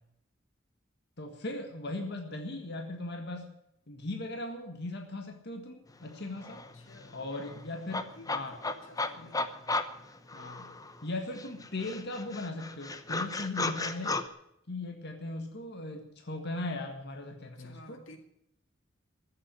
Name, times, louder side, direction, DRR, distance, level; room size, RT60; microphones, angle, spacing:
voice 1, 1.2-3.5 3.9-6.6 7.1-8.5 9.2-9.3 10.3-10.7 11.0-14.2 14.7-18.0, left 2 dB, 60° left, 4 dB, 1.7 m, -38 dB
sound 1, 6.1-6.2 6.4-11.0 11.4-14.2, left 3 dB, 20° left, 0.8 m, -35 dB
voice 2, 6.7-9.5 17.5-18.2, left 1 dB, 90° left, 6 dB, 2.2 m, -54 dB
14.5 x 7.6 x 9.8 m, 0.80 s
head